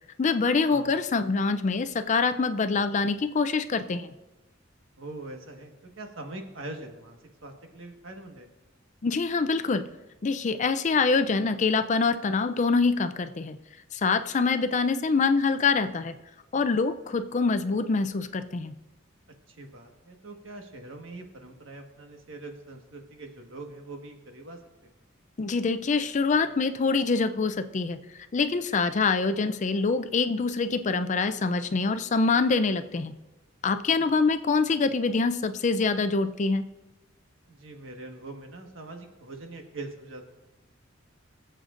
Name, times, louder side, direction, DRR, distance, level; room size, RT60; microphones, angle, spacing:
voice 1, 0.2-4.1 9.0-9.8 10.2-13.6 13.9-16.1 16.5-18.7 25.4-28.0 28.3-33.1 33.6-36.6, left 4 dB, 35° left, 11 dB, 0.4 m, -25 dB
voice 2, 5.0-8.5 19.5-24.9 37.5-40.2, right 2 dB, 75° right, 3 dB, 1.5 m, -43 dB
23.0 x 7.8 x 2.5 m, 1.0 s
head